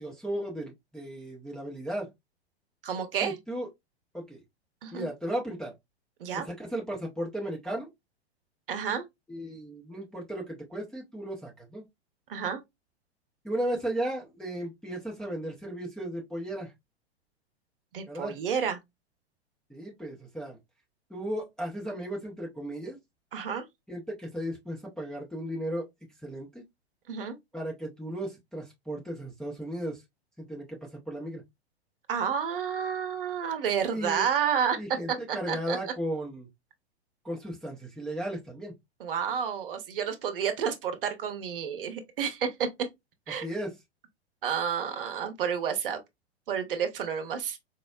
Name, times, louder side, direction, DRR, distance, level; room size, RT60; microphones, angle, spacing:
voice 1, 0.0-2.1 3.2-3.7 4.1-4.4 4.9-5.7 6.3-7.9 9.3-11.8 13.4-16.7 18.1-18.4 19.7-20.6 21.1-23.0 23.9-25.9 26.2-26.6 27.5-30.0 30.5-31.4 33.9-34.2 34.8-36.5 37.2-38.7 43.4-43.7, right 1 dB, ahead, 0.4 m, -35 dB
voice 2, 2.8-3.4 4.8-5.1 6.2-6.5 8.7-9.0 12.3-12.6 17.9-18.8 23.3-23.7 27.1-27.4 32.1-34.8 35.3-35.8 39.0-42.7 43.3-43.5 44.4-46.0 46.5-47.6, right 7 dB, 55° right, 0.7 m, -30 dB
4.3 x 2.0 x 2.3 m
figure-of-eight pair, 100°, 33 cm